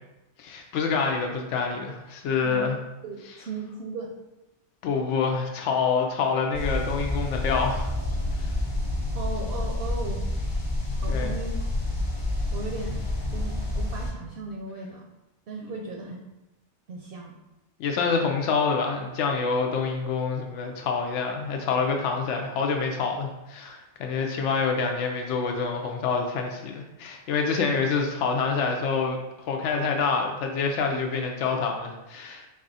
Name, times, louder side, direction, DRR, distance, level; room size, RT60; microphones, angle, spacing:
voice 1, 0.4-2.8 4.8-7.9 8.4-8.5 11.1-11.4 17.8-29.2 29.5-32.5, left 5 dB, 85° left, 2 dB, 0.9 m, -27 dB
voice 2, 3.0-4.1 9.1-10.3 10.9-11.7 12.5-13.0 13.3-15.1 15.5-16.2 16.9-17.3, right 3 dB, 65° right, 0 dB, 0.7 m, -36 dB
sound 1, 6.5-14.1, left 1 dB, 25° left, 0.8 m, -28 dB
4.1 x 2.4 x 4.0 m, 0.99 s
omnidirectional pair, 1.2 m